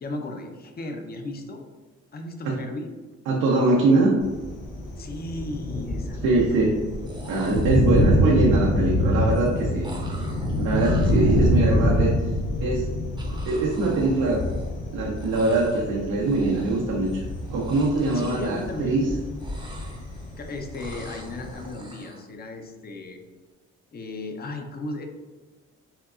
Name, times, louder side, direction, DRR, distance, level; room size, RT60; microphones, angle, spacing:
voice 1, 0.0-1.6 2.1-2.9 5.0-6.6 18.1-19.1 20.4-23.2 23.9-25.1, left 2 dB, 30° left, 4 dB, 0.6 m, -36 dB
voice 2, 3.3-4.1 6.2-6.8 7.2-9.9 10.6-12.1 12.6-12.9 13.4-14.4 14.9-17.2 17.5-19.1, right 3 dB, 90° right, -3 dB, 0.7 m, -22 dB
Thunder, 4.2-21.7, left 1 dB, 85° left, 1.1 m, -26 dB
sound 1, 4.8-4.9 5.2-5.8 6.8-6.9 7.1-8.3 9.8-12.0 13.2-14.9 15.1-15.9 16.2-17.0 17.4-19.1 19.3-20.4 20.7-22.3, right 1 dB, 15° right, 0.7 m, -45 dB
5.6 x 2.3 x 2.4 m, 1.3 s
cardioid pair, 90°, 30 cm